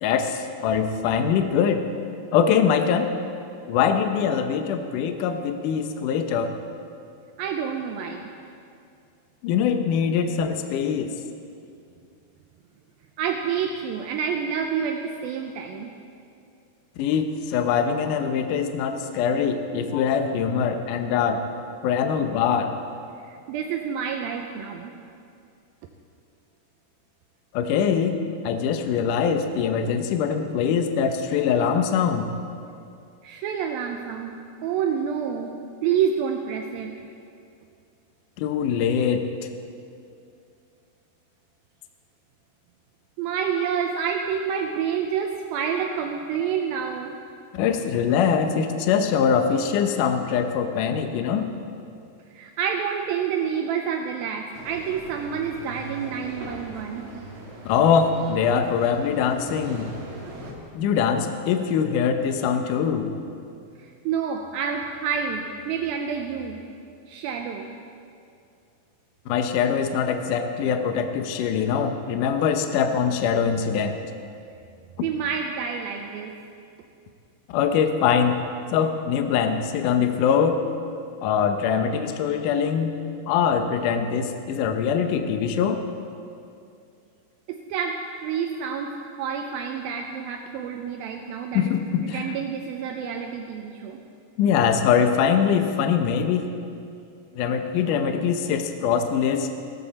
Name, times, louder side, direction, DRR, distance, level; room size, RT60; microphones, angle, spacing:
voice 1, 0.0-1.8 2.3-3.1 3.7-6.5 9.4-11.2 17.0-21.4 21.8-22.7 27.5-28.2 28.4-32.3 38.4-39.3 47.5-51.5 57.6-59.9 60.7-63.1 69.3-74.0 77.5-78.4 78.7-80.6 81.2-82.9 83.3-85.8 91.5-92.3 94.4-96.5 97.3-99.5, left 7 dB, 90° left, 7 dB, 1.8 m, -23 dB
voice 2, 7.4-8.3 13.2-15.9 23.3-24.9 33.2-35.5 35.8-36.9 43.2-47.2 52.4-57.1 64.1-66.6 67.1-67.7 75.0-76.3 87.5-91.7 92.0-94.0, right 7 dB, 85° right, 3 dB, 2.2 m, -28 dB
sound 1, 54.5-60.5, right 1 dB, 45° right, 1.8 m, -40 dB
17.0 x 14.5 x 4.2 m, 2.5 s
omnidirectional pair, 4.8 m